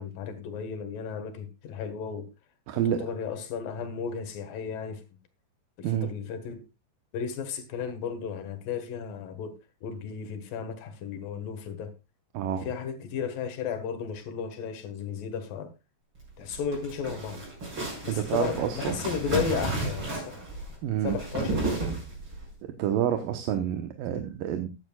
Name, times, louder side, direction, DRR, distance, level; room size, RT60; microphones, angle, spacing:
voice 1, 0.0-2.3 3.0-5.0 5.8-6.6 7.1-11.9 12.6-15.7 16.4-17.4 18.0-20.4 21.0-22.0, left 7 dB, 80° left, 3.3 m, -34 dB
voice 2, 2.7-3.1 5.8-6.1 12.3-12.7 18.1-19.0 20.8-21.2 22.8-24.7, right 10 dB, 85° right, 2.7 m, -28 dB
sound 1, 16.4-22.4, right 2 dB, 35° right, 6.8 m, -33 dB
14.5 x 11.0 x 2.3 m
omnidirectional pair, 3.9 m